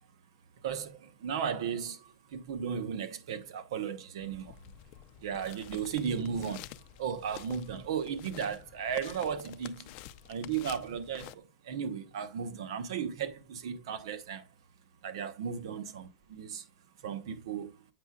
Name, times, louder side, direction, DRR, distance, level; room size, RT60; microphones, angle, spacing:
voice 1, 0.6-4.6 5.2-6.7 7.0-9.9 10.3-14.5 15.0-16.7 17.0-17.7, right 7 dB, 90° right, 1.0 m, -35 dB
sound 1, 4.2-11.3, left 14 dB, 50° left, 0.5 m, -49 dB
8.1 x 6.6 x 2.4 m
supercardioid pair, 140°, 3 cm